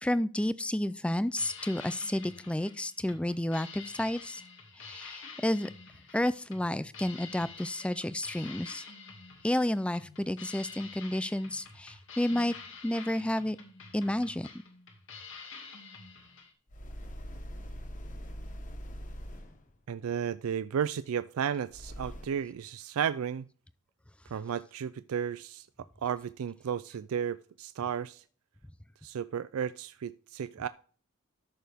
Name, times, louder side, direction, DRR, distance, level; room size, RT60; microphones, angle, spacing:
voice 1, 0.0-4.4 4.8-5.7 6.1-8.8 9.4-12.5 12.8-13.6 13.9-14.5, left 1 dB, 5° left, 16 dB, 0.3 m, -31 dB
sound 1, 1.2-16.5, left 5 dB, 65° left, 2.3 m, -48 dB
sound 2, 16.7-19.8 21.7-22.6, equal, 35° left, 1.1 m, -42 dB
voice 2, 19.9-23.5 24.3-25.7 26.0-28.2 29.0-30.7, right 8 dB, 90° right, 15 dB, 0.4 m, -33 dB
13.0 x 6.6 x 3.5 m, 0.43 s
head